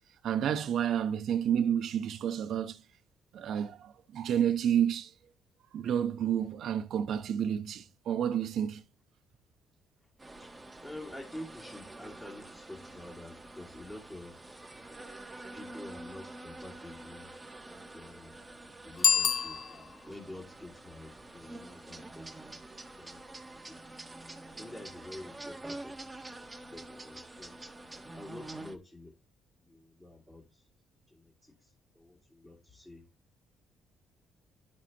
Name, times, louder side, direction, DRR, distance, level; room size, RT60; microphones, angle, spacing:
voice 1, 0.2-2.8 3.3-5.1 5.7-8.8, right 9 dB, 65° right, 0.9 m, -30 dB
voice 2, 10.2-14.5 15.5-17.3 17.7-18.3 18.8-23.2 23.5-23.8 24.4-25.9 26.7-27.6 28.2-29.1 29.6-30.6 31.1-31.7 31.9-33.0, left 1 dB, 15° left, 2.6 m, -48 dB
sound 1, 10.2-28.7, right 2 dB, 15° right, 1.4 m, -47 dB
Bicycle bell, 18.9-20.2, left 7 dB, 50° left, 0.4 m, -28 dB
11.0 x 6.2 x 3.0 m
cardioid pair, 95°, 0 cm